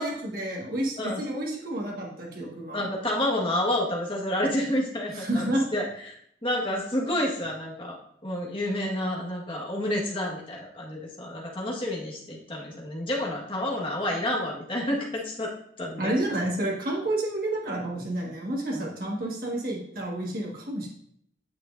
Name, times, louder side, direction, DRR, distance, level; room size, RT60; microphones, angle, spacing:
voice 1, 0.0-2.9 5.1-5.6 16.0-20.9, right 1 dB, 55° right, -2 dB, 1.7 m, -30 dB
voice 2, 2.7-6.1 6.4-16.1 18.7-18.9, left 1 dB, 30° left, -3 dB, 1.5 m, -29 dB
9.5 x 6.2 x 2.6 m, 0.69 s
head